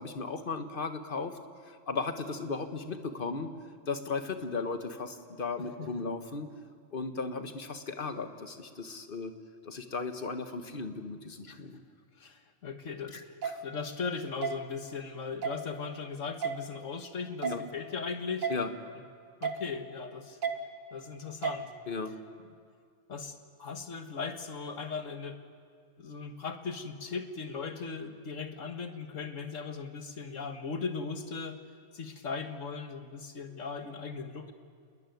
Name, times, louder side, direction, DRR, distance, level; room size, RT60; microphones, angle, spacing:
voice 1, 0.0-1.4 1.7-3.5 3.9-6.5 6.9-9.3 9.6-11.8 13.1-13.6 17.4-17.6 18.5-18.7 21.9-22.1, left 4 dB, 40° left, 8 dB, 1.6 m, -36 dB
voice 2, 12.2-13.3 13.6-18.5 19.4-20.4 20.9-21.7 23.1-25.4 26.0-31.6 31.9-34.5, left 5 dB, 65° left, 7 dB, 1.9 m, -38 dB
sound 1, 13.4-13.5 14.4-14.5 15.4-15.6 16.4-16.5 17.4-17.6 18.4-18.5 19.4-19.6 20.4-20.5 21.4-21.6, right 7 dB, 75° right, 2.0 m, -31 dB
28.5 x 20.5 x 9.5 m, 2.2 s
omnidirectional pair, 1.4 m